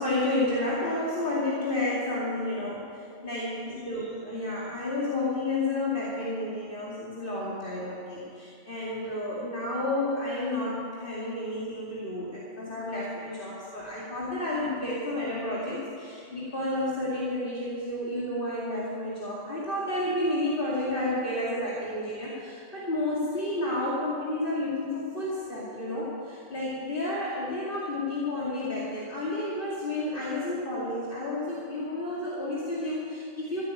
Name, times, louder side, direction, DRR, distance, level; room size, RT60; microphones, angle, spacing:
voice 1, 0.0-33.6, left 1 dB, 45° left, -7 dB, 2.7 m, -31 dB
15.0 x 8.9 x 9.1 m, 2.5 s
omnidirectional pair, 1.3 m